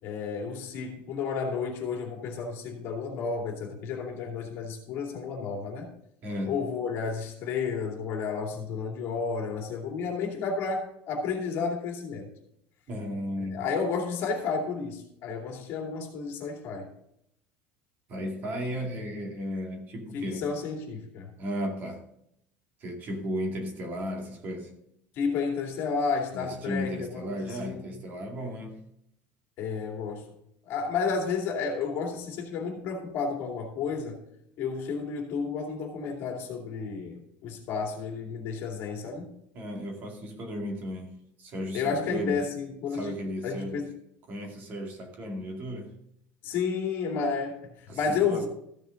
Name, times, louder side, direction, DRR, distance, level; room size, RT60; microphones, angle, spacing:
voice 1, 0.0-5.9 6.5-12.3 13.5-16.9 20.1-21.3 25.2-27.9 29.6-30.3 30.7-34.2 34.6-39.4 41.7-43.1 43.4-43.9 46.4-48.5, left 5 dB, 45° left, 1 dB, 2.6 m, -31 dB
voice 2, 6.2-6.7 12.9-13.7 18.1-20.6 21.4-22.1 22.8-24.7 26.3-28.8 39.5-42.5 42.9-43.9 44.3-45.9 47.9-48.5, equal, 35° right, 2 dB, 2.2 m, -35 dB
14.5 x 7.1 x 3.8 m, 0.74 s
cardioid pair, 175°, 5 cm